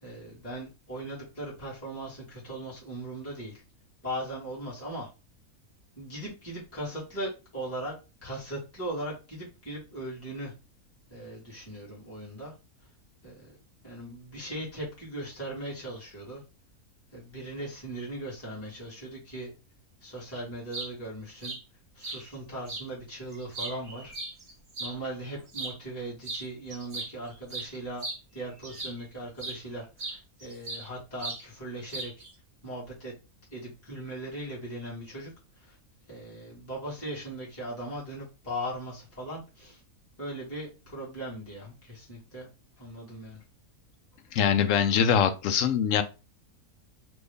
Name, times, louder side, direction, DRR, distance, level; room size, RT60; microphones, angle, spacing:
voice 1, 0.0-3.5 4.0-5.1 6.0-7.9 8.2-10.5 11.1-12.5 13.2-13.6 13.8-16.4 17.1-19.5 20.0-21.5 21.9-24.1 24.8-28.0 28.3-32.1 32.6-33.1 33.5-35.3 35.6-35.7 36.1-39.8 40.2-42.5 42.8-43.4, right 1 dB, 10° left, -6 dB, 1.5 m, -39 dB
sound 1, 20.5-20.9 21.4-21.6 22.0-22.2 22.7-22.9 23.3-24.9 25.5-25.8 26.2-26.5 26.7-29.0 29.4-29.6 30.0-30.9 31.2-31.4 31.9-32.3, right 2 dB, 40° right, 0.9 m, -37 dB
voice 2, 44.3-46.0, left 8 dB, 70° left, 9 dB, 0.8 m, -23 dB
3.1 x 2.6 x 3.4 m, 0.30 s
omnidirectional pair, 1.6 m